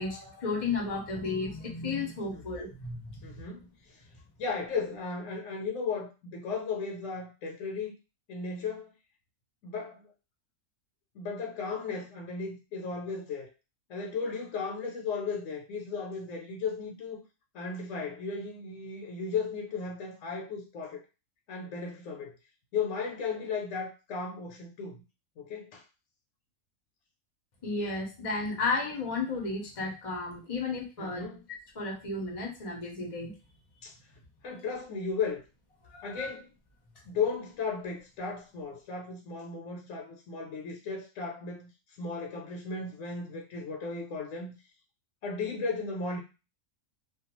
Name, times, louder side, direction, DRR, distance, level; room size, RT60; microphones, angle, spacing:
voice 1, 0.0-3.2 27.6-31.3 31.8-33.3 35.9-36.3, left 3 dB, 40° left, -1 dB, 0.5 m, -33 dB
voice 2, 3.2-4.0 4.4-8.0 8.3-8.9 9.6-10.1 11.1-13.5 13.9-17.2 17.5-21.0 21.5-22.3 22.7-25.0 25.4-25.8 31.0-31.4 33.8-33.9 34.4-35.4 36.0-36.5 37.1-41.7 42.0-44.5 45.2-46.2, left 5 dB, 70° left, -1 dB, 0.9 m, -35 dB
2.4 x 2.2 x 2.9 m, 0.29 s
omnidirectional pair, 1.5 m